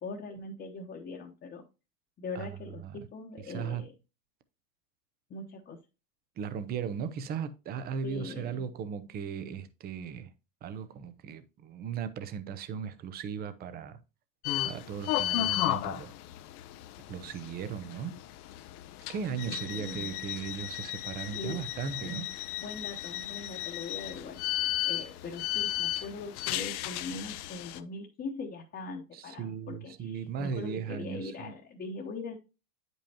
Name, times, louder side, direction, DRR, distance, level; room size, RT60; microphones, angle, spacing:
voice 1, 0.0-1.6 2.2-3.9 5.3-5.8 8.0-8.6 19.4-20.2 21.3-21.6 22.0-22.3 22.6-32.3, left 3 dB, 20° left, 1.0 m, -41 dB
voice 2, 2.3-3.0 3.4-3.9 6.4-10.3 10.6-14.0 14.6-16.1 17.1-18.2 19.1-22.2 29.1-31.5, right 7 dB, 20° right, 0.5 m, -37 dB
sound 1, 14.4-27.8, left 14 dB, 65° left, 0.7 m, -34 dB
8.8 x 5.4 x 2.8 m
supercardioid pair, 130°, 47 cm